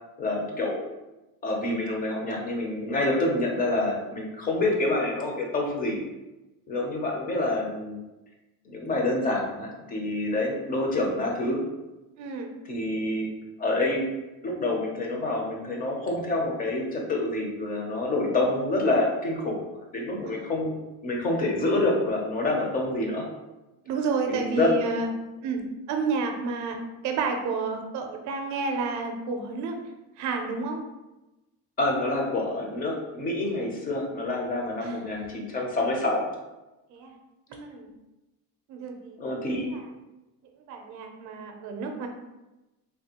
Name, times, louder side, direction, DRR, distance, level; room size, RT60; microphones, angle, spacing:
voice 1, 0.2-0.8 1.4-6.0 6.7-8.0 8.7-11.6 12.7-13.3 13.6-14.1 14.4-20.7 21.0-23.3 24.3-24.7 31.8-36.3 39.2-39.7, left 2 dB, 25° left, 0 dB, 0.5 m, -27 dB
voice 2, 12.2-12.5 20.2-20.5 23.9-25.1 25.4-25.6 25.9-26.8 27.0-29.8 30.2-30.8 34.8-35.0 36.9-37.2 37.5-37.9 38.7-39.9 40.7-42.1, right 4 dB, 50° right, 4 dB, 0.5 m, -31 dB
3.4 x 2.3 x 2.8 m, 1.0 s
cardioid pair, 160°, 38 cm